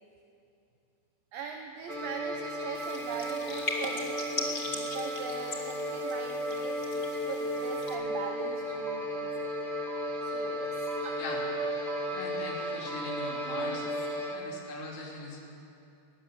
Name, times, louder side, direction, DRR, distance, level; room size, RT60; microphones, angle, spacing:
voice 1, 1.3-9.5 10.2-11.2 13.7-13.9, right 6 dB, 70° right, 3 dB, 2.5 m, -41 dB
sound 1, 1.9-14.3, equal, 40° right, 0.7 m, -34 dB
sound 2, 2.7-7.9, left 2 dB, 30° left, 1.0 m, -39 dB
sound 3, 7.9-8.0 8.9-9.0 9.9-10.0 10.9-11.0 11.9-12.0 12.9-13.4, right 5 dB, 90° right, 3.7 m, -45 dB
voice 2, 12.1-13.9 14.3-15.4, left 3 dB, 75° left, -2 dB, 5.3 m, -40 dB
20.5 x 19.0 x 7.4 m, 2.7 s
omnidirectional pair, 4.8 m